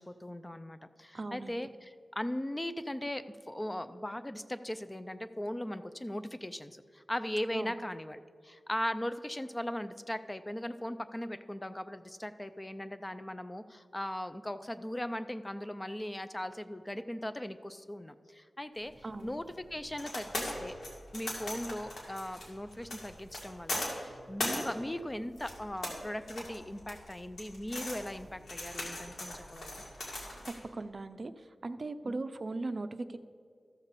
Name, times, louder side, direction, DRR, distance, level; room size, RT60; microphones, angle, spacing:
voice 1, 0.0-19.4 19.7-20.8 21.1-29.7 32.0-32.2, left 1 dB, 15° left, 12 dB, 0.4 m, -39 dB
voice 2, 1.1-1.5 7.5-7.8 19.0-19.3 30.7-31.3 31.6-33.2, right 2 dB, 50° right, 11 dB, 0.4 m, -38 dB
sound 1, 18.9-30.6, left 1 dB, 90° left, 2.1 m, -40 dB
13.0 x 7.0 x 4.1 m, 2.3 s
wide cardioid pair, 75°, 0 cm